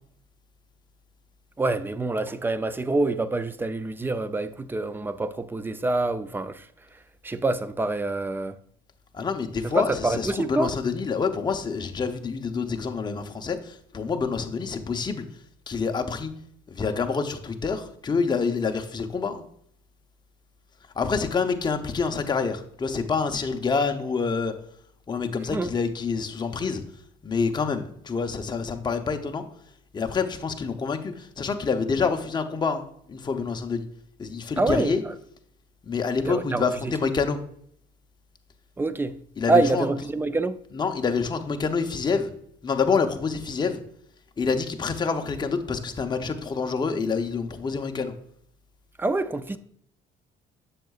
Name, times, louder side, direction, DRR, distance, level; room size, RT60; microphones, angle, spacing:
voice 1, 1.6-8.6 9.6-10.7 25.5-25.7 34.6-35.1 36.2-36.9 38.8-39.2 39.5-40.6 49.0-49.6, right 2 dB, 10° right, 0.4 m, -26 dB
voice 2, 9.1-15.3 15.7-16.3 16.7-19.4 21.0-24.5 25.1-26.8 27.2-29.4 29.9-33.9 34.2-35.0 35.9-37.4 39.4-39.8 40.7-42.3 42.6-43.8 44.4-48.1, left 5 dB, 25° left, 0.7 m, -27 dB
7.6 x 6.6 x 2.4 m
cardioid pair, 110°, 17 cm